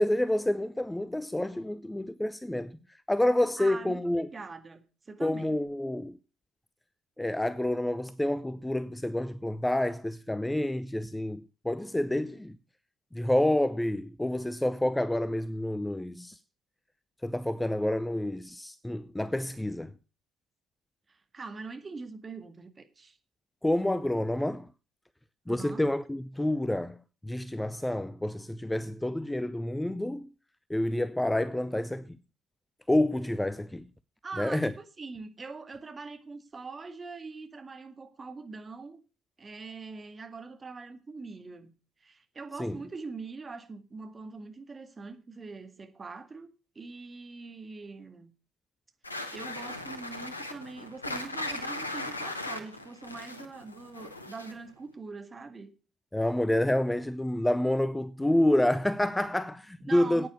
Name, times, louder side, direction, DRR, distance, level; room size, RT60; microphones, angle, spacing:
voice 1, 0.0-2.7 3.1-4.3 5.2-6.2 7.2-12.6 13.1-16.4 17.2-19.9 23.6-24.7 25.5-30.3 30.7-32.2 32.9-33.8 34.4-34.7 42.6-42.8 56.1-60.3, left 1 dB, 10° left, 0.6 m, -28 dB
voice 2, 3.6-5.6 21.1-23.2 25.5-25.9 34.2-39.0 39.4-41.7 42.0-46.5 46.8-48.3 49.3-55.7 59.9-60.3, right 4 dB, 30° right, 1.9 m, -43 dB
sound 1, 49.0-54.7, left 2 dB, 90° left, 0.9 m, -38 dB
9.5 x 9.2 x 6.5 m
figure-of-eight pair, 50°, 0 cm